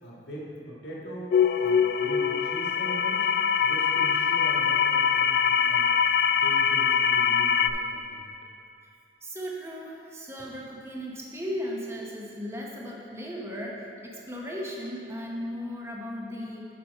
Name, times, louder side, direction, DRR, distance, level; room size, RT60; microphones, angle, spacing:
voice 1, 0.0-1.3 1.6-3.3 3.6-5.8 6.4-8.2, equal, 80° left, -4 dB, 1.7 m, -41 dB
sound 1, 1.3-7.7, left 7 dB, 60° left, 0.3 m, -23 dB
voice 2, 9.2-16.7, equal, 15° right, -3 dB, 0.8 m, -36 dB
7.4 x 5.2 x 5.3 m, 2.5 s
head